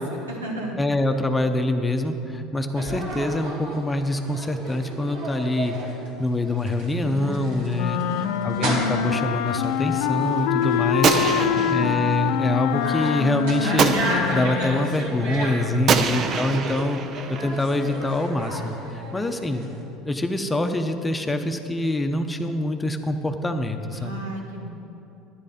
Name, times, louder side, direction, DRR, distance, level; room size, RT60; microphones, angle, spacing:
voice 1, 0.0-0.8 7.0-8.3 11.4-12.0 23.9-24.7, right 1 dB, 90° right, -2 dB, 1.7 m, -35 dB
voice 2, 0.8-5.8 6.2-8.0 8.4-11.2 11.7-14.0 14.3-17.0 17.3-19.7 20.0-24.2, left 1 dB, 15° left, 6 dB, 0.9 m, -25 dB
sound 1, 2.8-19.8, right 1 dB, 70° right, 2.3 m, -34 dB
sound 2, 7.7-15.1, left 9 dB, 70° left, 0.4 m, -25 dB
Gunshot gunfire, 11.0-12.1 13.8-14.6 15.9-17.6, right 6 dB, 50° right, 0.7 m, -24 dB
10.5 x 9.8 x 5.2 m, 2.9 s
hypercardioid pair, 70°, 0 cm